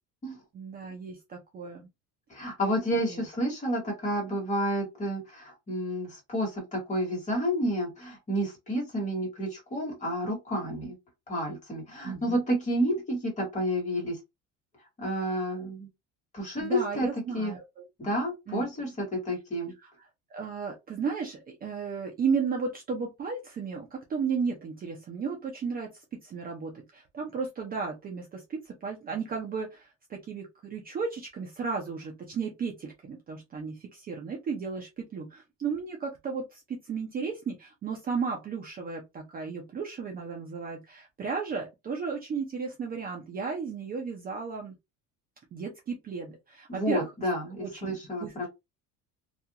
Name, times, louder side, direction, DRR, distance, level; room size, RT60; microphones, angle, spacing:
voice 1, 0.5-1.9 3.1-3.2 12.0-12.4 16.6-17.9 18.5-18.8 19.8-25.9 26.2-44.7 45.5-47.1 47.6-48.5, right 5 dB, 25° right, 1 dB, 0.5 m, -34 dB
voice 2, 2.3-10.9 11.3-14.2 15.0-15.9 16.3-17.1 17.3-17.5 18.0-19.7 46.7-48.5, equal, 20° left, 0 dB, 1.3 m, -30 dB
2.4 x 2.4 x 2.8 m, 0.22 s
cardioid pair, 155°, 33 cm